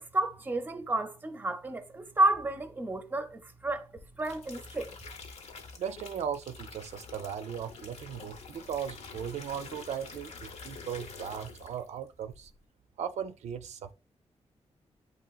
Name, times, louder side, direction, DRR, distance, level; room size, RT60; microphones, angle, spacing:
voice 1, 0.0-3.9 4.2-4.9, right 2 dB, 15° right, 0.5 m, -31 dB
sound 1, 4.0-12.0 12.3-12.6, left 4 dB, 75° left, 0.7 m, -47 dB
voice 2, 5.8-12.5 13.0-13.9, right 8 dB, 85° right, 0.4 m, -37 dB
8.0 x 2.8 x 2.3 m
wide cardioid pair, 130°, 11 cm